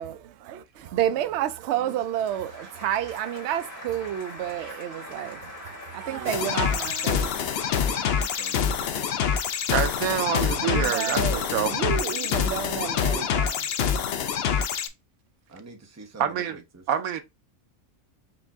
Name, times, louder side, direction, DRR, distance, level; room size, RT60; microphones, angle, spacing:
voice 1, 0.0-7.3 10.6-13.7, right 11 dB, 65° right, 0.7 m, -30 dB
voice 2, 0.8-1.4 1.7-2.1 6.0-6.7 7.7-9.3 15.5-16.8, right 3 dB, 15° right, 0.7 m, -47 dB
Applause, 1.8-10.8, left 1 dB, 40° left, 1.7 m, -44 dB
sound 1, 6.3-14.9, left 7 dB, 65° left, 0.6 m, -26 dB
voice 3, 9.7-11.8 16.2-16.6 16.9-17.2, right 9 dB, 90° right, 1.1 m, -26 dB
4.6 x 2.6 x 3.4 m
omnidirectional pair, 1.5 m